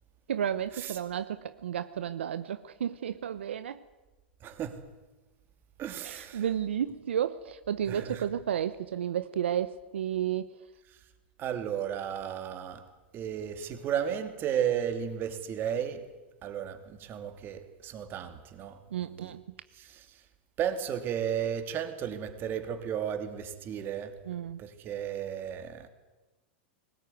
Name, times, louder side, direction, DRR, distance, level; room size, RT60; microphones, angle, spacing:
voice 1, 0.3-3.8 6.0-10.5 18.9-19.4 24.3-24.6, right 9 dB, 85° right, 0.9 m, -32 dB
voice 2, 4.4-4.9 5.8-6.4 7.9-8.3 11.4-12.9 13.1-16.1 16.4-19.3 19.7-20.2 20.6-24.2 24.6-25.9, right 9 dB, 35° right, 2.9 m, -34 dB
21.0 x 19.0 x 9.4 m
hypercardioid pair, 115°, 6 cm